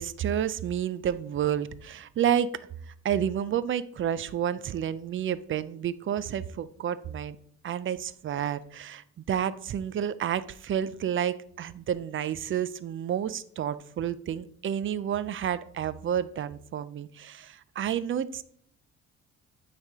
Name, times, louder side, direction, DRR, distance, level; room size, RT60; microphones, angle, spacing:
voice 1, 0.0-2.5 2.9-7.4 7.6-18.4, right 9 dB, 45° right, 16 dB, 0.4 m, -30 dB
8.9 x 3.4 x 3.5 m, 0.64 s
cardioid pair, 90°, 30 cm